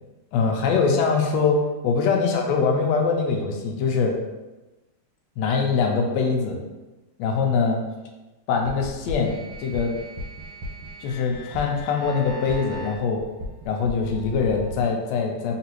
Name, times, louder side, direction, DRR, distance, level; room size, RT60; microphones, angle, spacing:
voice 1, 0.3-1.6 1.8-4.1 5.4-6.6 7.2-7.8 8.5-9.9 11.0-13.2 13.6-15.6, left 5 dB, 75° left, 1 dB, 1.7 m, -23 dB
sound 1, 8.6-14.8, left 1 dB, 65° right, 1.6 m, -36 dB
4.0 x 3.8 x 3.0 m, 1.1 s
omnidirectional pair, 3.3 m